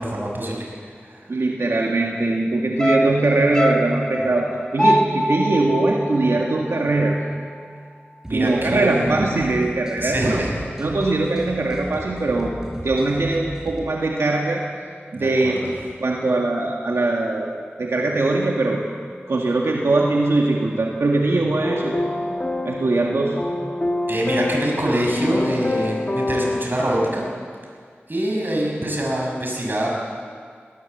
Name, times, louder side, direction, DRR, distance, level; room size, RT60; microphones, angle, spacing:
voice 1, 0.0-1.3 8.3-9.2 10.0-10.5 15.1-15.7 24.1-27.3 28.1-29.9, right 1 dB, 50° right, -2 dB, 6.5 m, -24 dB
voice 2, 1.3-7.2 8.3-10.5 10.8-12.5 12.8-14.6 15.1-15.7 16.0-18.8 19.3-21.9 22.7-23.4, right 2 dB, 90° right, -1 dB, 1.9 m, -21 dB
sound 1, 2.8-7.2 7.5-7.6, equal, 15° left, 1.4 m, -24 dB
sound 2, 8.2-13.8, right 1 dB, 15° right, 5.3 m, -37 dB
sound 3, 21.6-26.6, left 2 dB, 40° left, 1.7 m, -26 dB
19.5 x 18.5 x 7.8 m, 2.1 s
wide cardioid pair, 50°, 4 cm